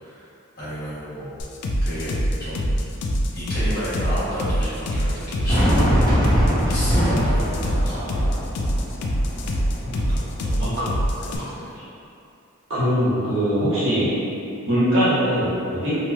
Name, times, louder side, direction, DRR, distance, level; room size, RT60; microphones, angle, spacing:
voice 1, 0.6-1.4 1.8-2.6 3.3-8.4 10.1-10.9 11.2-11.7, equal, 45° left, -13 dB, 1.2 m, -33 dB
sound 1, 1.4-11.4, equal, 90° left, 0.3 m, -24 dB
Fireworks, 5.5-10.5, equal, 20° left, 0.7 m, -23 dB
voice 2, 12.7-14.1 14.6-16.0, equal, 60° right, -12 dB, 1.2 m, -21 dB
3.0 x 2.9 x 2.3 m, 2.6 s
head